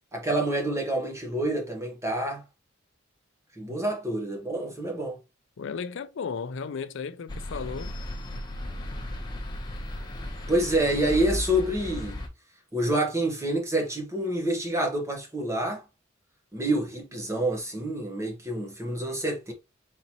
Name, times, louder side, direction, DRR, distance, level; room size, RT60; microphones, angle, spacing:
voice 1, 0.1-2.4 3.6-5.2 10.5-12.2 12.7-15.8 16.5-19.5, right 1 dB, 15° right, 1.1 m, -27 dB
voice 2, 5.6-7.9, left 5 dB, 65° left, 0.4 m, -34 dB
sound 1, 7.3-12.3, left 1 dB, 20° left, 0.9 m, -35 dB
4.2 x 3.9 x 2.9 m
head